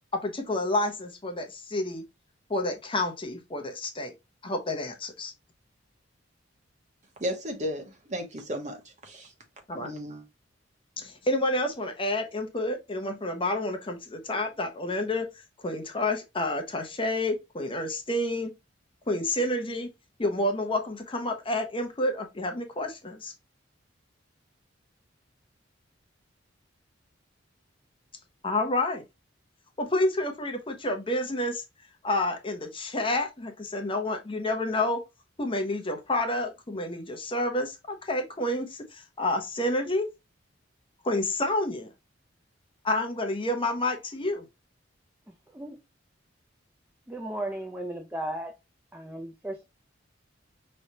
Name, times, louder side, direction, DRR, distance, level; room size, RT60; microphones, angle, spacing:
voice 1, 0.1-2.0 2.5-4.1 4.4-5.3 9.7-9.9 11.0-15.3 15.6-18.5 19.1-19.9 20.2-23.3 28.4-29.0 29.8-31.6 32.0-35.0 35.4-40.1 41.0-41.9 42.8-44.4, left 1 dB, 30° left, 0.8 m, -29 dB
voice 2, 7.2-9.3 9.8-10.2, equal, 40° right, 1.2 m, -34 dB
voice 3, 47.1-48.5 48.9-49.6, right 1 dB, 10° right, 0.5 m, -35 dB
5.4 x 3.2 x 2.7 m
head